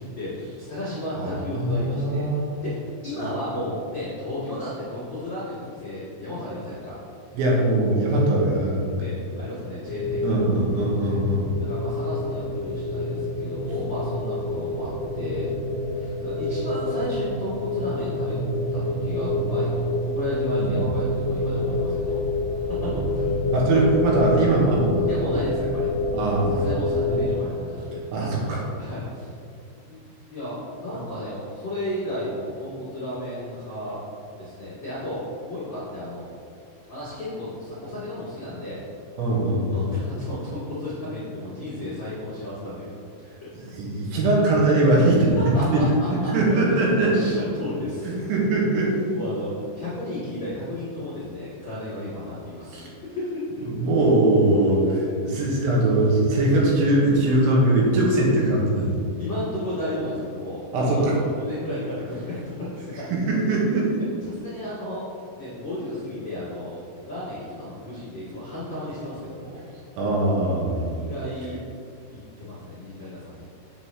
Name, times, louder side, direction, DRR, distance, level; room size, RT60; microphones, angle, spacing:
voice 1, 0.1-2.3 2.6-7.0 8.9-11.2 11.6-15.5 15.9-18.4 18.7-22.2 22.5-23.3 23.7-23.9 25.1-25.9 26.5-28.0 28.7-29.3 29.7-30.0 30.3-34.0 34.4-36.3 36.9-38.8 39.7-42.9 45.4-45.8 46.2-46.6 47.0-48.1 49.1-53.4 59.2-63.1 64.2-65.0 65.3-69.6 70.8-71.6 72.1-73.5, left 1 dB, 85° left, -12 dB, 1.0 m, -33 dB
voice 2, 1.2-2.4 3.1-3.3 7.3-9.0 10.2-11.5 20.6-20.8 22.8-22.9 23.5-25.1 26.1-26.7 28.1-28.6 39.2-39.9 43.7-45.4 45.7-45.8 46.3-47.3 48.1-49.1 52.7-52.9 53.7-58.9 60.7-61.1 63.3-63.9 70.0-71.0, right 2 dB, 75° right, -4 dB, 3.6 m, -21 dB
sound 1, 9.8-27.3, left 1 dB, 55° right, 2.3 m, -27 dB
7.7 x 7.6 x 3.1 m, 2.4 s
omnidirectional pair, 5.6 m